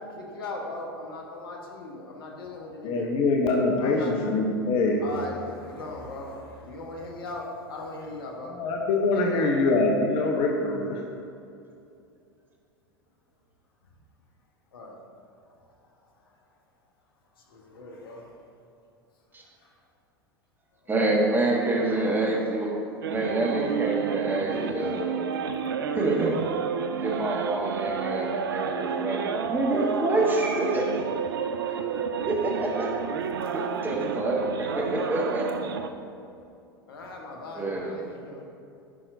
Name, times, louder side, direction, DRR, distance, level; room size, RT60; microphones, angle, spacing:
voice 1, 0.1-3.1 3.8-4.1 5.0-8.5 9.1-9.5 14.7-15.0 15.4-16.5 17.3-18.4 19.4-19.8 20.7-20.9 21.5-22.3 25.6-25.7 31.4-32.3 33.8-34.0 36.9-38.4, left 2 dB, 65° left, 0 dB, 1.2 m, -40 dB
voice 2, 2.8-5.0 8.5-11.0, left 3 dB, 45° left, 1 dB, 0.8 m, -24 dB
voice 3, 20.9-22.7 23.0-25.2 25.9-26.4 27.0-30.9 32.3-32.9 33.5-35.5 37.5-38.0, right 2 dB, 15° right, -1 dB, 1.3 m, -27 dB
sound 1, 23.0-35.9, right 6 dB, 65° right, 0.4 m, -30 dB
11.0 x 5.8 x 2.6 m, 2.6 s
figure-of-eight pair, 80°, 13 cm